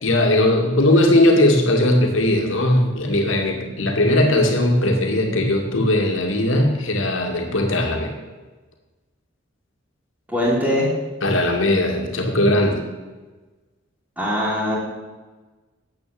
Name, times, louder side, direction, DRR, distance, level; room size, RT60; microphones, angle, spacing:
voice 1, 0.0-8.1 11.2-12.8, left 1 dB, 80° left, 2 dB, 2.3 m, -18 dB
voice 2, 10.3-10.9 14.2-14.7, equal, 5° right, -10 dB, 3.1 m, -21 dB
10.5 x 8.5 x 7.7 m, 1.2 s
head